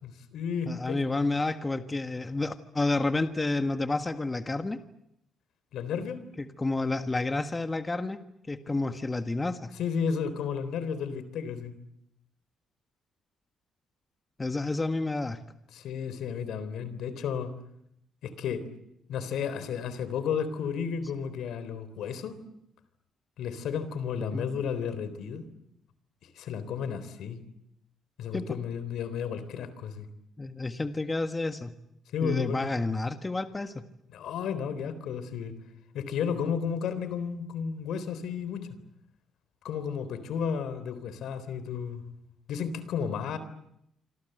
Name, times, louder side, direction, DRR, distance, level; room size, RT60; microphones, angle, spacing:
voice 1, 0.0-1.0 5.7-6.2 8.7-8.8 9.8-11.7 15.7-17.5 18.2-18.7 19.1-22.4 23.4-25.5 26.4-27.4 28.2-30.1 32.1-32.7 34.1-35.5 35.9-38.7 39.6-42.0 42.5-43.4, left 7 dB, 80° left, 13 dB, 3.9 m, -33 dB
voice 2, 0.7-4.8 6.4-8.2 8.5-9.7 14.4-15.4 24.3-24.5 28.3-28.5 30.4-31.7 32.2-33.8, left 2 dB, 20° left, 8 dB, 1.7 m, -30 dB
26.5 x 26.5 x 8.1 m, 0.78 s
cardioid pair, 90°, 0 cm